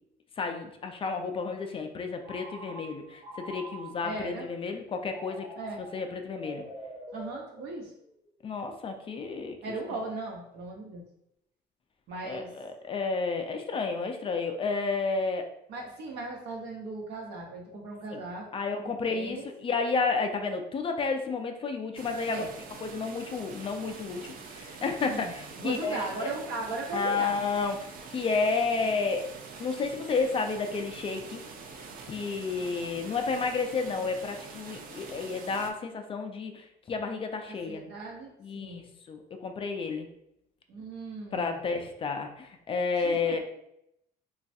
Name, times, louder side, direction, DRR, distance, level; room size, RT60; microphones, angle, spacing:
voice 1, 0.4-5.5 5.8-6.6 8.4-9.6 12.3-15.5 18.1-18.2 18.5-22.4 22.8-26.3 26.9-29.3 29.6-31.4 32.1-37.8 38.4-40.1 41.3-43.4, left 4 dB, 30° left, 5 dB, 0.4 m, -31 dB
Telephone, 2.2-4.2 5.1-8.1, right 1 dB, 35° right, 0.9 m, -45 dB
voice 2, 4.0-4.5 5.6-5.8 7.1-7.9 9.6-11.0 12.1-12.5 15.7-18.5 19.0-19.4 22.3-22.5 25.0-27.4 37.5-38.9 40.7-41.5 43.0-43.4, right 3 dB, 80° right, -1 dB, 0.9 m, -38 dB
sound 1, 21.9-35.7, right 4 dB, 55° right, 0.5 m, -45 dB
3.1 x 2.3 x 2.6 m, 0.79 s
cardioid pair, 110°, 17 cm